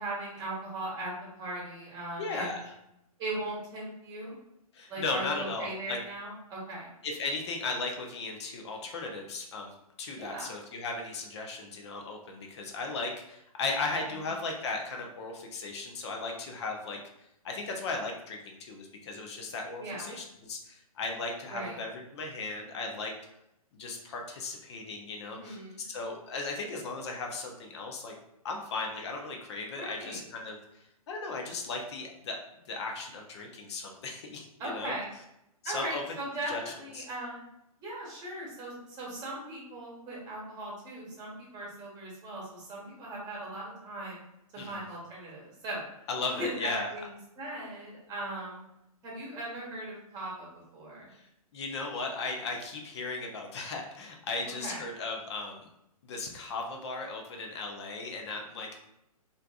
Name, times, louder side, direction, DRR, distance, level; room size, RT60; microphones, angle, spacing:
voice 1, 0.0-2.5 3.2-4.4 4.9-6.9 10.1-10.5 19.8-20.1 21.5-21.8 25.4-25.8 29.8-30.2 34.6-35.1 35.6-37.4 37.8-44.2 44.5-45.8 46.4-48.6 49.0-51.1 54.5-54.8, right 1 dB, 20° right, -4 dB, 1.1 m, -38 dB
voice 2, 2.2-2.7 4.7-6.0 7.0-17.0 17.4-23.1 23.7-28.1 28.4-32.4 32.7-34.5 34.7-34.9 35.6-36.0 36.5-37.0 44.6-44.8 46.1-46.9 51.1-51.3 51.5-55.7 56.0-58.8, left 3 dB, 45° left, 2 dB, 0.6 m, -36 dB
3.2 x 2.6 x 2.3 m, 0.83 s
figure-of-eight pair, 125°, 19 cm